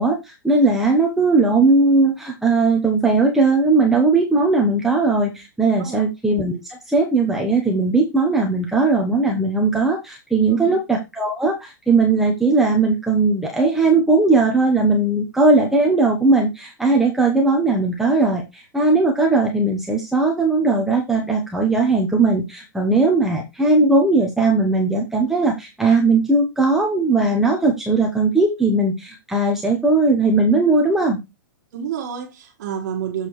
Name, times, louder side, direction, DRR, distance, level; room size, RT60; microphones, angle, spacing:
voice 1, 0.0-6.6 6.9-31.2, right 3 dB, 5° right, 0.9 m, -18 dB
voice 2, 31.7-33.3, right 7 dB, 55° right, 1.7 m, -29 dB
7.4 x 6.4 x 3.1 m
hypercardioid pair, 155°, 11 cm